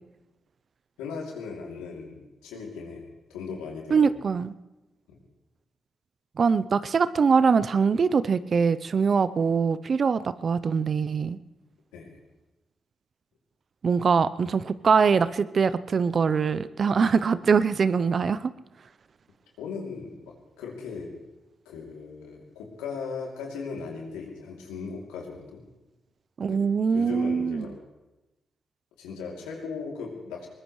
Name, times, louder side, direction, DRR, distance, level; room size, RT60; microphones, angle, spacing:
voice 1, 1.0-4.1 11.9-12.2 19.6-21.2 21.6-25.6 26.5-26.6 26.9-27.8 29.0-30.5, left 5 dB, 90° left, -1 dB, 2.9 m, -38 dB
voice 2, 3.9-4.5 6.4-11.4 13.8-18.5 26.4-27.7, right 5 dB, 55° right, 14 dB, 0.7 m, -23 dB
22.0 x 20.5 x 3.2 m, 1.0 s
hypercardioid pair, 45°, 0 cm